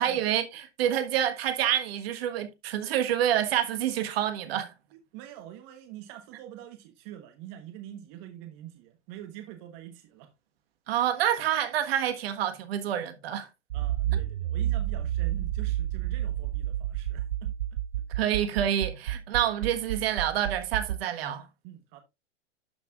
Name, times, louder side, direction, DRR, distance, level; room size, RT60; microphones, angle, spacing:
voice 1, 0.0-4.7 10.9-13.5 18.1-21.5, right 10 dB, 55° right, 1.5 m, -27 dB
voice 2, 5.1-10.3 13.7-17.5 21.6-22.0, right 12 dB, 40° right, 1.2 m, -45 dB
Accelerating revving vroom, 13.7-21.0, right 13 dB, 75° right, 0.7 m, -30 dB
12.0 x 5.9 x 2.4 m
hypercardioid pair, 115°, 35 cm